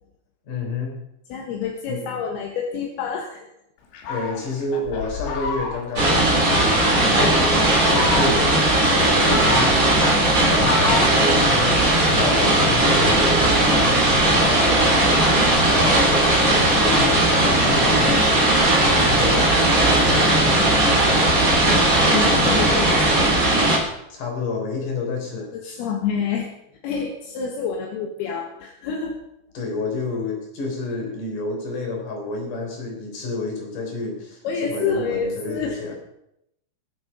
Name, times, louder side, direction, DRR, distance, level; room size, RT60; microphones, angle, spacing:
voice 1, 0.4-1.0 1.9-2.0 4.1-9.7 10.4-18.2 19.0-21.1 24.1-25.8 29.5-35.9, left 3 dB, 45° left, 1 dB, 4.8 m, -29 dB
voice 2, 1.3-3.5 9.3-9.5 22.1-23.2 25.5-26.5 26.8-29.2 34.4-35.8, left 6 dB, 65° left, 1 dB, 2.7 m, -27 dB
Fowl, 3.9-6.0 6.5-7.1 7.7-8.6 9.1-11.9, left 3 dB, 85° left, 4.5 m, -29 dB
sound 1, 6.0-23.8, right 1 dB, 25° right, 2.2 m, -18 dB
21.5 x 7.8 x 5.5 m, 0.81 s
omnidirectional pair, 5.8 m